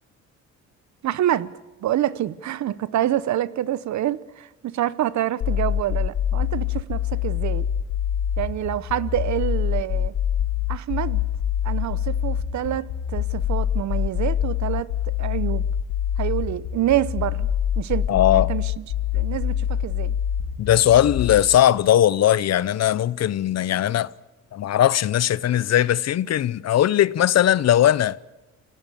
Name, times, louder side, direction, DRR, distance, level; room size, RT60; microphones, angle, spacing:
voice 1, 1.0-1.5 1.8-7.6 8.4-10.1 10.7-11.2 11.6-14.9 15.2-15.6 16.2-17.5 17.8-18.7 19.1-20.2, right 12 dB, 70° right, 1.0 m, -27 dB
sound 1, 5.4-21.4, left 10 dB, 85° left, 2.4 m, -25 dB
voice 2, 18.1-18.5 20.6-24.1 24.5-28.2, left 11 dB, 60° left, 0.8 m, -19 dB
29.5 x 17.5 x 7.0 m
cardioid pair, 90°, 30 cm